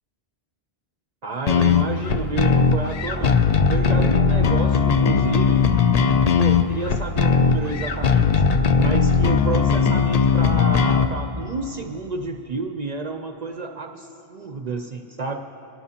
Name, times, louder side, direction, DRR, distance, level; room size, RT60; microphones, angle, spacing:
voice 1, 1.2-3.4 3.7-5.7 6.3-8.4 8.8-15.4, right 3 dB, 50° right, 5 dB, 0.6 m, -30 dB
sound 1, 1.5-11.1, left 6 dB, 50° left, 0.5 m, -19 dB
23.0 x 12.0 x 2.8 m, 3.0 s
omnidirectional pair, 1.0 m